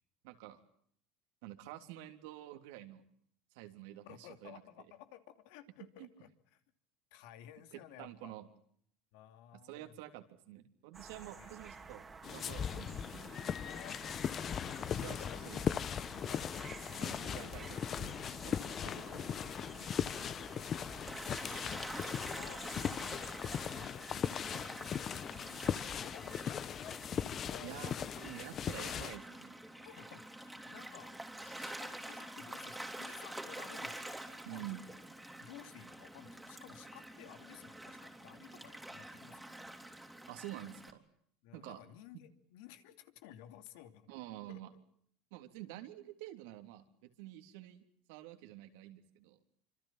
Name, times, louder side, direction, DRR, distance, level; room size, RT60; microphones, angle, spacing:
voice 1, 0.2-0.6 1.4-3.0 3.5-4.6 6.0-6.1 7.7-8.5 9.6-13.3 14.9-15.7 17.0-18.2 18.4-18.7 19.1-19.9 27.6-29.6 34.4-34.8 40.3-41.0 41.5-41.8 42.1-42.2 44.1-44.7 45.3-49.4, right 14 dB, 80° right, 6 dB, 3.4 m, -49 dB
voice 2, 4.0-6.6 7.1-8.3 9.1-10.0 11.4-11.6 13.6-14.3 14.6-14.9 15.1-15.5 16.3-16.5 18.8-19.5 21.4-27.8 29.8-35.0 35.4-39.7 41.4-44.1 44.5-44.8, left 12 dB, 80° left, 9 dB, 2.8 m, -56 dB
sound 1, 10.9-23.9, right 4 dB, 20° right, 2.8 m, -52 dB
sound 2, 12.2-29.2, left 8 dB, 35° left, 1.0 m, -39 dB
Gull seagull / Waves surf, 21.1-40.9, right 1 dB, 5° right, 3.4 m, -47 dB
26.5 x 26.0 x 5.8 m, 0.65 s
supercardioid pair, 135°, 0 cm